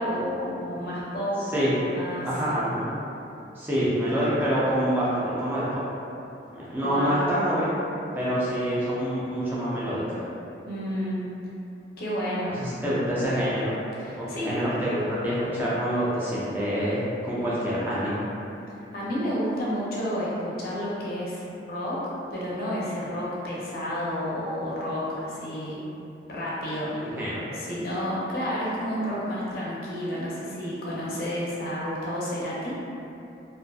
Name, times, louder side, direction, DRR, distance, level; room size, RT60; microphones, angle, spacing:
voice 1, 0.0-1.5 1.7-2.3 6.7-7.3 10.7-11.2 12.0-12.6 14.0-14.6 18.9-22.0 22.3-25.8 26.3-27.2 27.5-32.8, equal, 55° left, -7 dB, 0.5 m, -30 dB
voice 2, 2.2-2.8 3.6-5.6 6.5-7.7 8.1-10.2 12.6-13.8 14.2-18.3 26.9-27.5, equal, 10° right, -9 dB, 0.4 m, -26 dB
2.5 x 2.4 x 2.2 m, 2.8 s
head